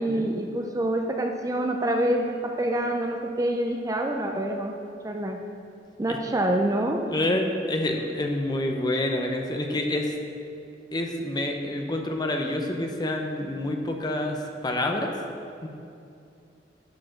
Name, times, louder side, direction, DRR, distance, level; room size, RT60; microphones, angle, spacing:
voice 1, 0.0-4.7 5.0-5.4 6.0-7.0, right 1 dB, 20° right, 2 dB, 0.5 m, -26 dB
voice 2, 7.1-10.1 10.9-15.1 15.6-15.7, left 1 dB, 25° left, 3 dB, 0.8 m, -28 dB
10.5 x 5.0 x 6.3 m, 2.5 s
head